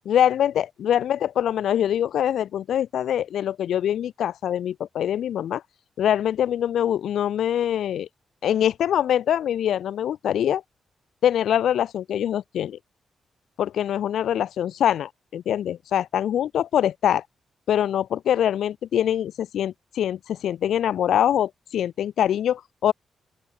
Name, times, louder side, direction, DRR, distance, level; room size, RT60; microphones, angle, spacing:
voice 1, 0.1-5.6 6.0-8.1 8.4-10.6 11.2-12.8 13.6-17.2 17.7-22.9, left 10 dB, 85° left, 0.6 m, -24 dB
open air
cardioid pair, 115°, 0 cm